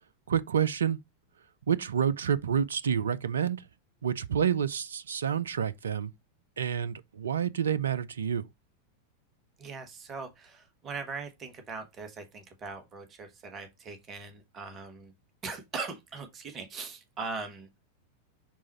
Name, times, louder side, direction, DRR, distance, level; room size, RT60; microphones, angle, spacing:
voice 1, 0.3-1.0 1.7-3.7 4.0-6.1 6.6-8.4, right 8 dB, 65° right, 0.4 m, -28 dB
voice 2, 9.6-15.1 15.4-17.7, right 4 dB, 25° right, 1.3 m, -40 dB
6.1 x 3.6 x 4.2 m
figure-of-eight pair, 90°, 0 cm